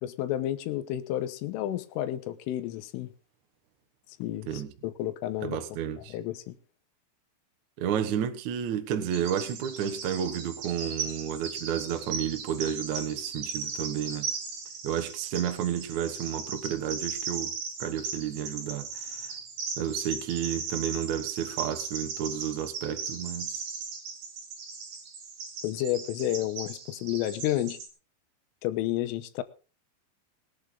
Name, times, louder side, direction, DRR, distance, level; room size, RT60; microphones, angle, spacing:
voice 1, 0.0-3.1 4.2-5.6 6.1-6.6 25.6-27.8 28.6-29.4, left 13 dB, 90° left, 3.6 m, -31 dB
voice 2, 5.4-6.1 7.8-14.3 14.8-17.5 17.8-19.3 19.8-23.7, right 9 dB, 85° right, 1.7 m, -31 dB
Bird vocalization bird call bird song, 9.1-27.9, right 5 dB, 50° right, 4.0 m, -37 dB
20.0 x 10.5 x 3.9 m
omnidirectional pair, 5.6 m